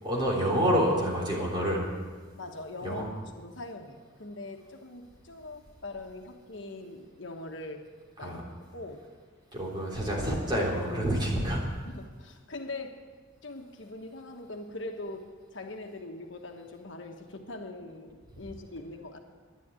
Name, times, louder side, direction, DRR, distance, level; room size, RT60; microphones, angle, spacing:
voice 1, 0.0-1.8 2.8-3.1 8.2-8.4 9.5-11.6, equal, 25° right, -3 dB, 3.6 m, -28 dB
voice 2, 2.3-3.1 3.3-7.9 8.2-8.4 8.7-9.0 11.8-13.0 13.4-19.2, left 2 dB, 70° left, 4 dB, 1.3 m, -42 dB
12.0 x 10.5 x 9.0 m, 1.5 s
head